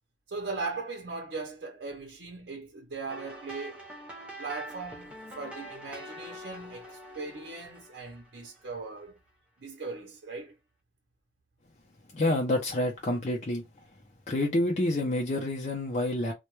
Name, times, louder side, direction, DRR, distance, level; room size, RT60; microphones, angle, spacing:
voice 1, 0.3-3.9 4.4-9.2 9.6-10.6, right 4 dB, 70° right, 0.6 m, -39 dB
sound 1, 3.1-9.0, equal, 5° right, 0.6 m, -45 dB
voice 2, 12.1-13.6 14.3-16.3, left 1 dB, 40° left, 0.5 m, -28 dB
2.2 x 2.1 x 3.0 m
head